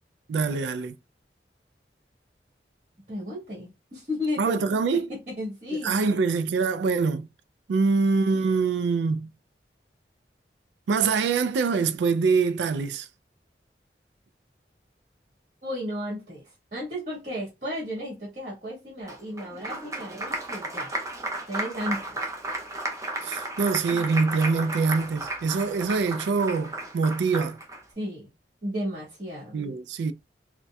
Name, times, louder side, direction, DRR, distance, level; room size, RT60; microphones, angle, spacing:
voice 1, 0.3-0.9 4.4-5.0 5.8-7.3 7.7-9.3 10.9-13.1 23.2-27.6 29.5-30.1, right 4 dB, 85° right, 0.3 m, -24 dB
voice 2, 3.1-4.5 4.9-6.2 15.6-16.4 16.7-20.9 21.5-22.2 23.9-24.0 27.9-28.3 28.6-29.6, left 1 dB, 45° right, 1.5 m, -34 dB
Applause, 19.1-27.8, right 2 dB, 20° right, 0.5 m, -34 dB
4.1 x 2.2 x 2.2 m
head